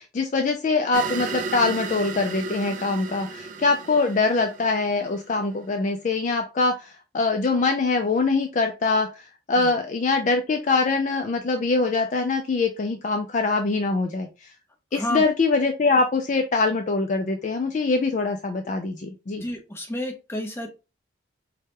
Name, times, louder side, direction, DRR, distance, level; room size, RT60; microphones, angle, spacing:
voice 1, 0.0-14.5 14.9-19.4, left 3 dB, 40° left, 4 dB, 0.3 m, -23 dB
sound 1, 0.9-5.5, right 4 dB, 40° right, 0.3 m, -34 dB
voice 2, 14.9-15.2 19.4-20.7, left 1 dB, 15° left, 1 dB, 0.7 m, -30 dB
4.7 x 2.2 x 2.8 m, 0.29 s
head